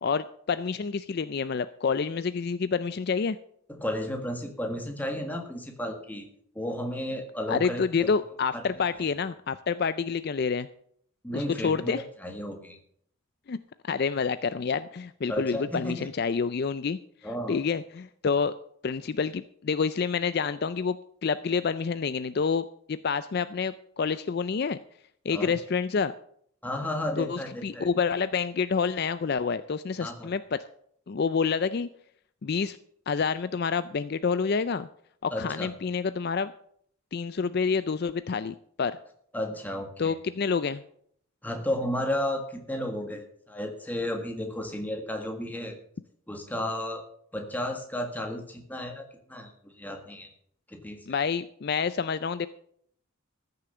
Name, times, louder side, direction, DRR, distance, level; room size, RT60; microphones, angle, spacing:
voice 1, 0.0-3.4 7.5-10.7 11.3-12.0 13.5-13.6 13.9-17.0 17.5-18.5 18.8-21.0 21.2-24.8 25.2-26.1 27.2-30.6 31.1-31.9 32.4-32.8 33.1-34.9 35.2-36.5 37.1-39.0 40.0-40.8 51.1-52.5, left 5 dB, 45° left, 14 dB, 0.4 m, -28 dB
voice 2, 3.7-6.2 6.5-8.1 8.5-8.6 9.0-9.1 11.2-12.8 15.3-16.1 17.2-17.6 25.3-25.5 26.6-27.9 30.0-30.3 35.3-35.7 39.3-40.2 41.4-45.7 46.3-47.0 47.3-49.0 49.3-50.3 50.7-51.2, left 1 dB, 10° left, 4 dB, 1.6 m, -33 dB
14.0 x 6.8 x 6.8 m, 0.65 s
head